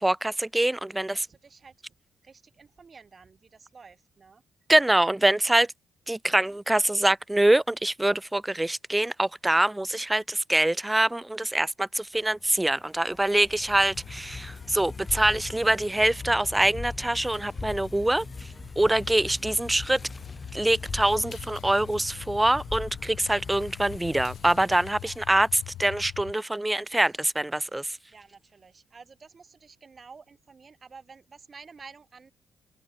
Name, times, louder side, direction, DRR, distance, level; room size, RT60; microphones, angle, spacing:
voice 1, 0.0-1.2 4.7-5.7 6.1-18.3 18.8-20.0 20.5-28.0, right 1 dB, 10° right, 0.4 m, -24 dB
voice 2, 1.0-1.7 2.2-4.4 6.4-6.6 13.0-13.7 15.2-15.5 25.0-25.2 26.9-27.2 28.1-32.3, right 5 dB, 35° right, 6.4 m, -51 dB
sound 1, 12.3-25.7, left 3 dB, 25° left, 3.2 m, -41 dB
sound 2, 13.6-26.3, left 14 dB, 85° left, 2.0 m, -45 dB
cardioid pair, 90°, 0 cm